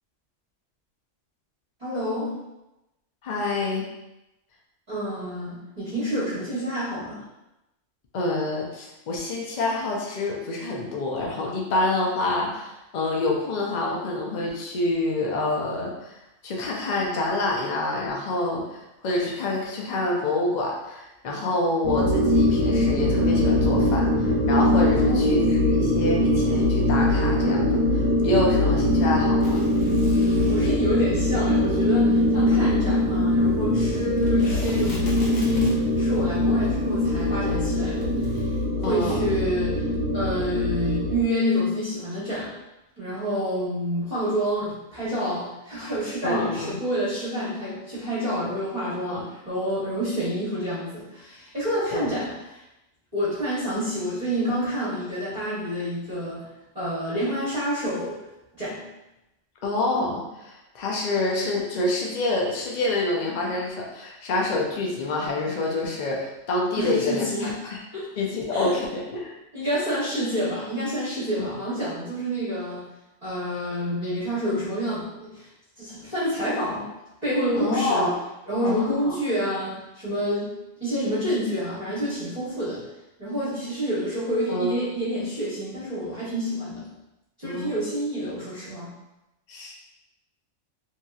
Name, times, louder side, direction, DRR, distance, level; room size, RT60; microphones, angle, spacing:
voice 1, 1.8-2.4 4.9-7.2 25.0-25.4 30.5-39.9 40.1-42.5 43.0-52.6 53.1-58.2 58.5-58.9 66.8-67.5 67.9-68.1 68.5-68.7 69.5-72.9 73.2-75.5 75.8-76.9 77.2-78.1 78.5-82.9 83.2-86.9 87.4-88.9, equal, 35° right, -9 dB, 1.0 m, -28 dB
voice 2, 3.2-3.9 8.1-25.4 25.7-29.6 32.5-32.7 38.8-39.2 46.2-46.8 49.0-49.2 51.9-52.1 59.6-67.8 68.2-69.4 71.4-71.5 77.6-78.1 78.6-79.2 84.5-84.8 87.4-87.7 89.5-89.7, left 2 dB, 60° left, -1 dB, 0.4 m, -27 dB
sound 1, 21.8-41.2, left 1 dB, 90° right, 1.0 m, -22 dB
sound 2, 29.4-30.8 34.0-36.0 36.6-36.7 36.9-37.0 38.0-38.4, left 1 dB, 75° left, 1.2 m, -39 dB
3.0 x 2.7 x 2.3 m, 0.94 s
omnidirectional pair, 1.4 m